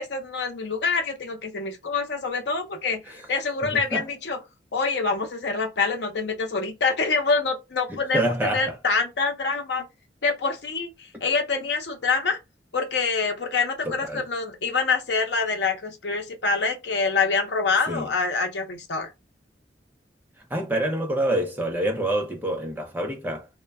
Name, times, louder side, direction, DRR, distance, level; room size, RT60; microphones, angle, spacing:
voice 1, 0.0-4.4 4.7-9.8 10.2-12.4 12.7-19.1, left 4 dB, 75° left, 0.6 m, -26 dB
voice 2, 3.6-4.1 7.9-8.7 13.8-14.2 17.9-18.1 20.5-23.5, right 1 dB, 10° right, 0.5 m, -27 dB
2.1 x 2.1 x 3.4 m
head